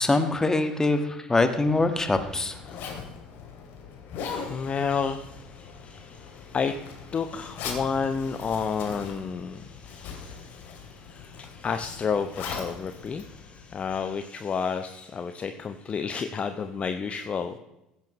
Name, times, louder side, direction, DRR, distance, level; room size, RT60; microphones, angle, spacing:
voice 1, 0.0-2.5, left 2 dB, 15° left, 8 dB, 1.5 m, -23 dB
Zipper (clothing), 1.5-14.1, left 5 dB, 55° left, 2.6 m, -41 dB
voice 2, 4.2-17.6, left 6 dB, 30° left, 8 dB, 0.8 m, -31 dB
16.0 x 10.5 x 3.1 m, 0.91 s
figure-of-eight pair, 65°, 4 cm